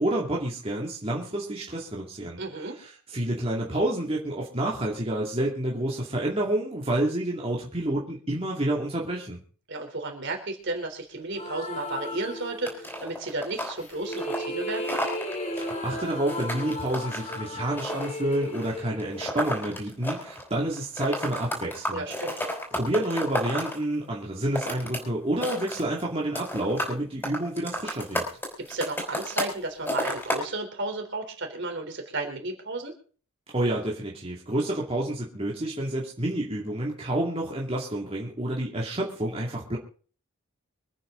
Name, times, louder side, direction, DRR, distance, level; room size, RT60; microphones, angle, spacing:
voice 1, 0.0-2.4 2.8-9.4 15.5-22.0 22.7-28.3 33.5-39.8, right 1 dB, 25° right, -3 dB, 2.5 m, -29 dB
voice 2, 2.4-2.8 9.7-14.9 21.9-22.4 28.6-32.9, right 2 dB, 55° right, 3 dB, 3.7 m, -33 dB
sound 1, 11.3-13.1 13.8-19.9, left 1 dB, 30° left, 2.4 m, -35 dB
sound 2, 12.7-20.5 20.7-23.8 24.3-25.0 25.3-26.0 26.3-27.0 27.2-29.6 29.8-30.4, equal, 10° left, 4.5 m, -32 dB
25.5 x 9.3 x 3.9 m, 0.42 s
head